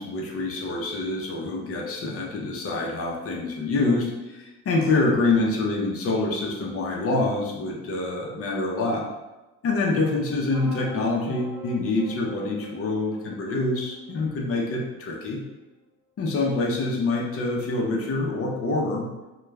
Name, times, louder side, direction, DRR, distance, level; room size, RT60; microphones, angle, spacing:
voice 1, 0.0-9.0 9.6-15.4 16.2-19.1, left 2 dB, 50° left, -1 dB, 0.7 m, -26 dB
sound 1, 10.5-15.5, left 2 dB, 20° right, 0.8 m, -46 dB
2.3 x 2.2 x 3.2 m, 1.1 s
cardioid pair, 90°, 30 cm